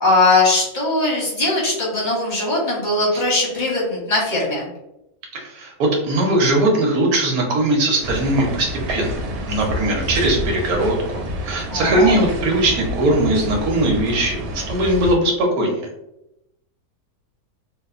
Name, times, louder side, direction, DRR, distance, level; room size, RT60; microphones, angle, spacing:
voice 1, 0.0-4.7 11.7-12.2, left 2 dB, 50° left, -4 dB, 0.5 m, -20 dB
voice 2, 5.3-9.2 9.5-15.9, right 1 dB, 65° right, 0 dB, 1.1 m, -20 dB
sound 1, 8.0-15.2, equal, 90° right, 1.2 m, -28 dB
2.8 x 2.0 x 2.4 m, 0.88 s
omnidirectional pair, 1.7 m